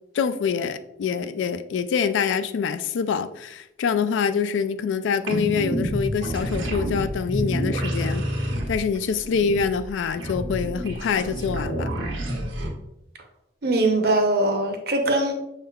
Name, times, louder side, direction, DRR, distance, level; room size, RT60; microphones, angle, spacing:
voice 1, 0.1-11.9, left 6 dB, 80° left, 11 dB, 0.3 m, -25 dB
sound 1, 5.3-12.7, equal, 90° right, 1.0 m, -28 dB
voice 2, 13.6-15.3, right 2 dB, 55° right, 3 dB, 0.7 m, -21 dB
6.4 x 3.6 x 2.3 m, 0.85 s
head